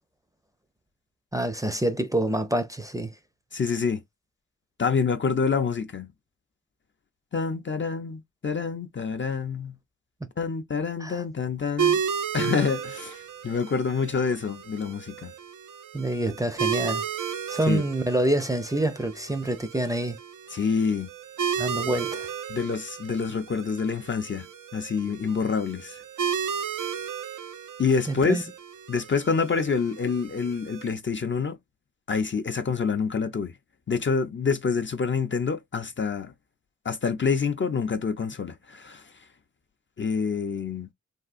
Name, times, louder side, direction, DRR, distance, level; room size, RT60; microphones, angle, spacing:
voice 1, 1.3-3.1 11.0-11.2 15.9-17.0 17.5-20.2 21.6-22.3 28.1-28.4, right 1 dB, 10° right, 0.6 m, -27 dB
voice 2, 3.5-4.0 4.8-6.1 7.3-9.8 10.4-12.0 12.3-15.3 17.7-17.8 20.5-21.1 22.5-24.5 24.7-26.0 27.8-28.4 28.9-31.6 32.1-33.5 33.9-36.3 36.8-39.1 40.0-40.9, left 5 dB, 40° left, 0.5 m, -27 dB
sound 1, 11.8-30.9, right 7 dB, 80° right, 0.6 m, -33 dB
3.5 x 2.3 x 2.5 m
cardioid pair, 55°, 31 cm